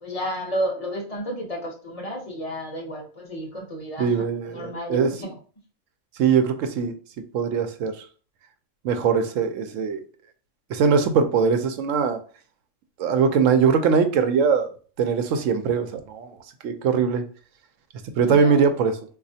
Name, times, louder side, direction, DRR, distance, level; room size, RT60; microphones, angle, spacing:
voice 1, 0.0-4.2 4.5-5.4 18.2-18.7, equal, 35° left, 0.7 m, -31 dB
voice 2, 4.0-5.1 6.2-6.9 7.3-8.0 8.8-10.0 10.7-12.2 13.0-14.7 15.0-16.4 16.6-17.3 18.2-19.0, right 6 dB, 80° right, 0.9 m, -21 dB
4.0 x 2.4 x 2.7 m
omnidirectional pair, 1.3 m